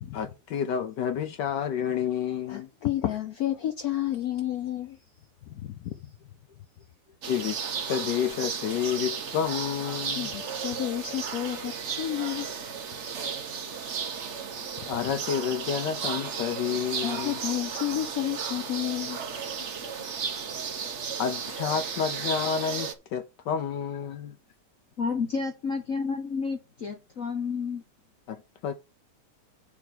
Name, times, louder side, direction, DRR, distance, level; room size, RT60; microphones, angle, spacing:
voice 1, 0.1-2.7 7.3-7.6 7.9-10.3 14.9-17.4 21.2-24.3 28.3-28.7, left 8 dB, 70° left, 1.1 m, -30 dB
voice 2, 2.5-5.0 5.5-5.9 10.2-12.5 17.0-19.5, left 12 dB, 90° left, 0.8 m, -31 dB
sound 1, 7.2-22.9, right 6 dB, 50° right, 0.9 m, -34 dB
voice 3, 25.0-27.8, left 5 dB, 45° left, 1.2 m, -30 dB
7.0 x 4.7 x 6.6 m
omnidirectional pair, 2.4 m